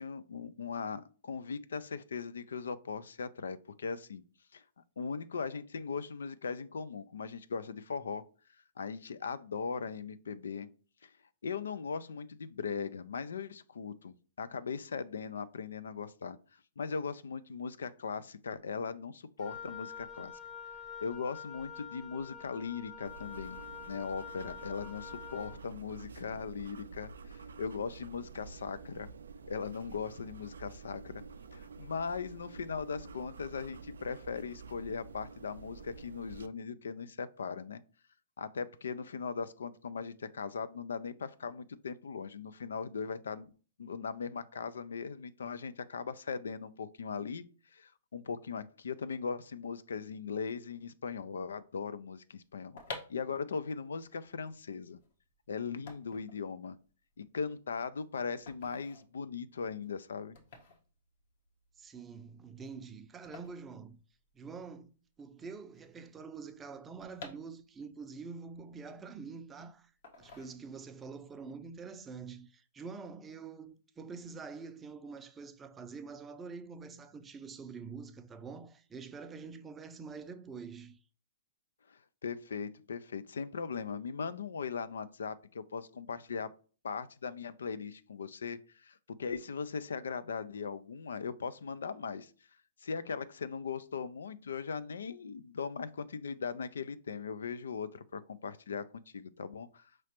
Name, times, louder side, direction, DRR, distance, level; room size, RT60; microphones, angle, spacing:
voice 1, 0.0-4.2 4.5-4.6 5.0-8.2 8.8-10.7 11.0-11.1 11.4-16.4 16.8-20.3 21.0-23.6 23.9-29.1 29.5-31.2 31.5-37.8 38.4-43.5 43.8-47.4 47.7-52.8 53.1-55.0 55.5-56.8 57.2-60.4 81.9-86.5 86.8-92.3 92.8-99.9, left 5 dB, 80° left, 0.4 m, -39 dB
Wind instrument woodwind instrument, 19.4-25.6, left 7 dB, 10° left, 0.8 m, -47 dB
sound 1, 23.1-36.5, right 4 dB, 80° right, 0.3 m, -49 dB
sound 2, 52.5-64.6 64.9-65.0 65.2-68.0 68.4-69.5 70.0-71.0 71.4-71.7, left 3 dB, 65° left, 1.2 m, -51 dB
voice 2, 61.8-64.0 64.3-69.9 70.2-81.0, right 5 dB, 15° right, 0.5 m, -46 dB
4.9 x 3.1 x 2.9 m
hypercardioid pair, 125°, 0 cm